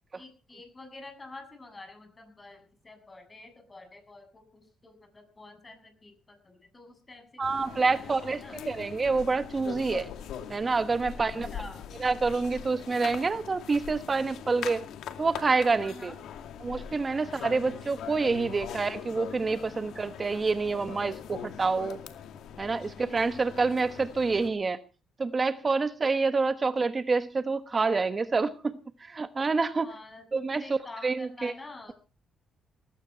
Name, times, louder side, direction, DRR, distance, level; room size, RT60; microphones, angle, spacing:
voice 1, 0.1-8.6 11.3-11.9 15.8-16.2 17.3-17.8 29.8-31.9, left 2 dB, 25° left, 7.7 m, -48 dB
sound 1, 7.4-24.5, left 9 dB, 80° left, 2.3 m, -42 dB
voice 2, 7.4-10.1 10.5-11.5 12.0-14.8 15.2-16.1 16.6-22.0 22.6-24.8 25.2-29.9 30.3-30.6 31.0-31.5, right 4 dB, 30° right, 1.2 m, -27 dB
19.0 x 16.0 x 4.4 m
cardioid pair, 90°, 0 cm